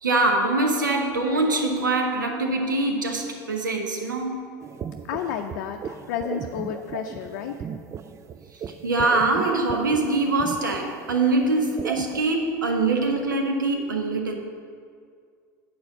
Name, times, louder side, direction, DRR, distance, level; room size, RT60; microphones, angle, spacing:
voice 1, 0.0-4.5 8.8-14.4, right 2 dB, 85° right, 3 dB, 1.0 m, -23 dB
sound 1, 4.6-12.2, right 7 dB, 30° right, 0.4 m, -37 dB
voice 2, 5.1-7.6, left 8 dB, 65° left, 4 dB, 0.5 m, -31 dB
8.8 x 4.3 x 7.1 m, 2.2 s
hypercardioid pair, 75°, 10 cm